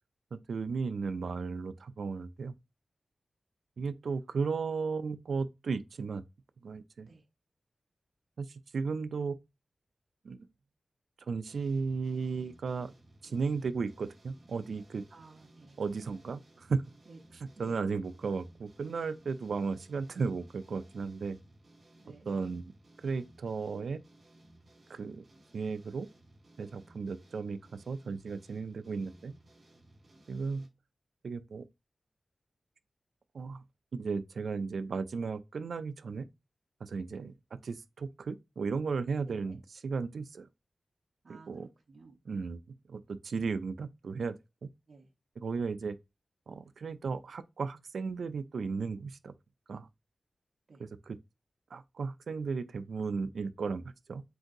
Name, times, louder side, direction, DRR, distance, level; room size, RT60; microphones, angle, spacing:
voice 1, 0.3-2.6 3.8-6.2 6.6-7.1 8.4-9.4 10.2-10.5 11.3-12.9 13.2-15.0 15.8-16.8 17.6-21.4 22.3-22.7 23.0-24.0 24.9-25.2 25.5-26.1 26.6-29.3 30.3-30.7 31.2-31.7 33.3-33.6 33.9-36.3 36.8-40.5 41.3-41.7 42.3-42.6 42.9-44.7 45.4-46.0 46.5-49.3 49.7-49.9 50.8-51.2 51.7-54.2, right 5 dB, 80° right, 0.4 m, -35 dB
sound 1, 11.5-30.7, right 1 dB, 35° right, 2.6 m, -60 dB
voice 2, 15.1-16.0 17.1-17.9 22.0-22.3 39.3-39.6 41.2-42.2 44.9-45.1 50.7-50.8, right 3 dB, 60° right, 0.8 m, -55 dB
7.6 x 2.6 x 2.6 m
wide cardioid pair, 135°, 0 cm